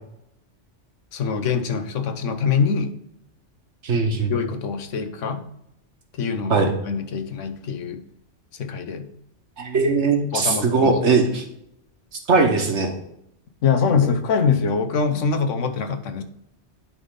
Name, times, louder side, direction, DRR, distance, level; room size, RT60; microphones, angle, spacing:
voice 1, 1.1-2.9 4.3-5.4 6.2-8.0 8.6-9.1 10.3-11.0 13.6-16.2, left 5 dB, 85° left, 7 dB, 1.2 m, -24 dB
voice 2, 3.8-4.3 6.5-6.7 9.6-11.4 12.3-12.9, right 4 dB, 70° right, 3 dB, 1.5 m, -19 dB
11.0 x 3.8 x 3.8 m, 0.78 s
omnidirectional pair, 1.2 m